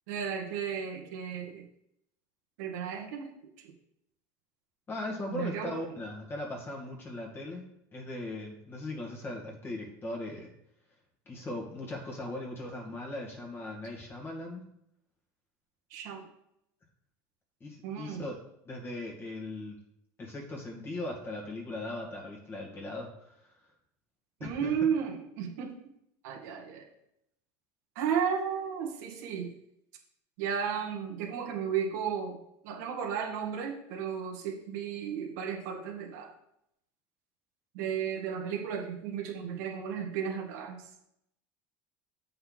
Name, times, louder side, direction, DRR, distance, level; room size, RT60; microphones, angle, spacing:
voice 1, 0.1-1.6 2.6-3.7 5.3-5.8 15.9-16.2 17.8-18.2 24.4-25.8 26.2-26.9 28.0-29.5 30.4-32.4 32.6-36.3 37.7-40.9, right 7 dB, 80° right, 0 dB, 2.0 m, -34 dB
voice 2, 4.9-7.7 7.9-10.5 11.3-14.6 17.6-18.4 18.7-19.8 20.2-23.5 24.4-24.8, left 2 dB, 25° left, -1 dB, 2.1 m, -39 dB
7.9 x 5.6 x 4.0 m, 0.78 s
supercardioid pair, 130°, 9 cm